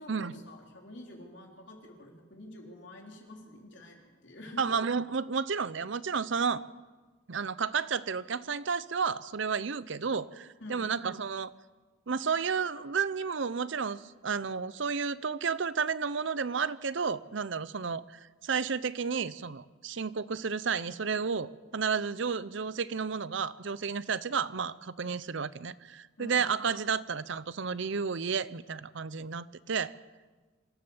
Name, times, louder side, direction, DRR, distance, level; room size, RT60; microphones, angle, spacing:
voice 1, 0.0-4.6 10.6-10.9 26.2-26.4, left 1 dB, 60° left, 0 dB, 3.8 m, -48 dB
voice 2, 4.6-6.6 7.3-11.5 12.1-29.9, right 5 dB, 65° right, 17 dB, 0.6 m, -32 dB
26.0 x 14.0 x 7.2 m, 1.3 s
head